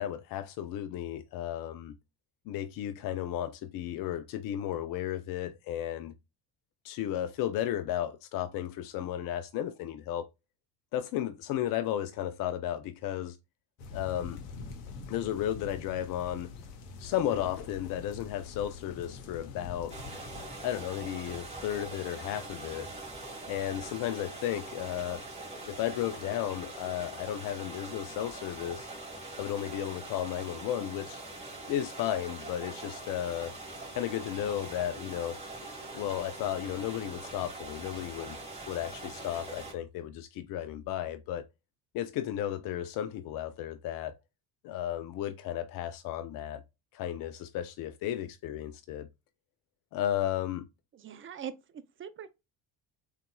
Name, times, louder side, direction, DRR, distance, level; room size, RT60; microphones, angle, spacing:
voice 1, 0.0-1.9 2.5-6.1 6.8-10.3 10.9-13.4 13.9-14.4 15.1-16.5 17.0-20.0 20.6-22.9 23.5-25.2 25.7-28.9 29.4-31.2 31.7-33.5 33.9-35.4 35.9-38.4 38.7-41.4 41.9-44.2 44.6-46.6 46.9-49.1 49.9-50.7, left 11 dB, 50° left, 0.5 m, -34 dB
sound 1, 13.8-20.5, left 5 dB, 80° left, 0.9 m, -44 dB
sound 2, 19.9-39.7, right 2 dB, 15° right, 1.7 m, -43 dB
voice 2, 50.9-52.3, right 8 dB, 30° right, 0.4 m, -42 dB
3.9 x 2.5 x 2.2 m
hypercardioid pair, 70°, 48 cm